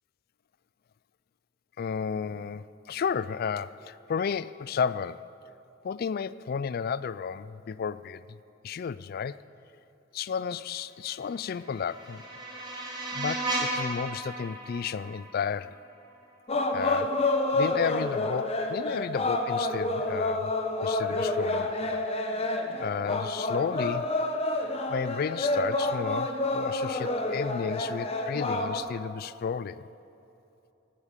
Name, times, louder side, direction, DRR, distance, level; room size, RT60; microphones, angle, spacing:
voice 1, 1.8-5.2 5.8-8.4 8.6-9.4 10.1-12.2 13.1-15.8 16.7-17.2 17.5-20.5 20.8-22.0 22.8-24.1 24.9-29.8, left 6 dB, 50° left, 17 dB, 0.3 m, -32 dB
sound 1, 11.2-16.2, right 2 dB, 25° right, 3.0 m, -35 dB
sound 2, 16.5-28.8, left 2 dB, 30° left, 1.0 m, -29 dB
17.0 x 8.6 x 8.2 m, 2.8 s
head